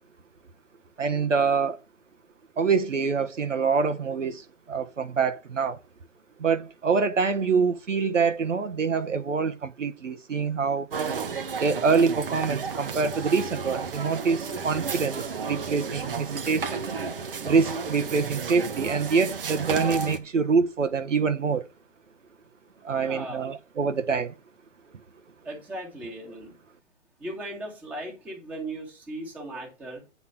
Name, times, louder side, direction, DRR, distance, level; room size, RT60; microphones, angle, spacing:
voice 1, 1.0-1.8 2.6-5.8 6.4-10.9 11.6-16.9 17.4-21.7 22.8-24.3, right 5 dB, 70° right, 1.2 m, -25 dB
sound 1, 10.9-20.2, right 5 dB, 45° right, 1.1 m, -32 dB
voice 2, 22.9-23.5 25.4-26.6 27.2-30.0, right 1 dB, 5° right, 1.7 m, -37 dB
9.5 x 4.2 x 5.6 m
hypercardioid pair, 155°, 39 cm